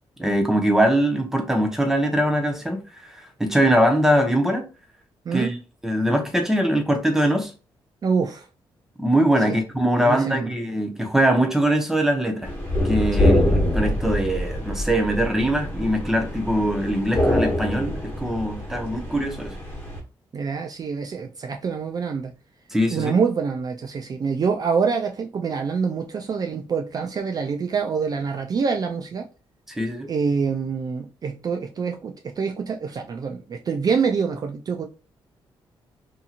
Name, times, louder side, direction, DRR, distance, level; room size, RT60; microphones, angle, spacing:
voice 1, 0.2-4.6 5.3-5.6 5.8-7.5 9.0-12.5 12.8-19.6 22.7-23.1 29.7-30.1, right 1 dB, 5° right, 0.7 m, -22 dB
voice 2, 8.0-8.5 9.5-9.6 10.0-10.5 13.2-13.3 20.3-22.3 22.9-29.3 30.1-34.9, right 5 dB, 40° right, 0.4 m, -25 dB
sound 1, 12.4-20.0, left 1 dB, 20° left, 1.2 m, -24 dB
2.7 x 2.7 x 2.4 m
cardioid pair, 85°, 9 cm